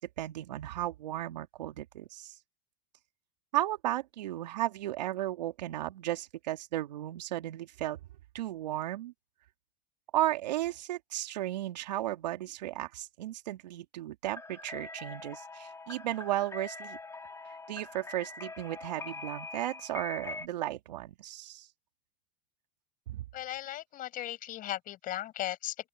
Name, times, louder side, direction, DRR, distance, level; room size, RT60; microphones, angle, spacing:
voice 1, 0.0-2.4 3.5-8.0 8.3-9.1 10.1-17.0 17.5-21.7 23.1-23.2, right 14 dB, 85° right, 2.5 m, -35 dB
sound 1, 14.2-20.5, left 3 dB, 15° left, 2.1 m, -44 dB
voice 2, 23.3-25.9, left 13 dB, 40° left, 7.7 m, -37 dB
open air
supercardioid pair, 115°, 21 cm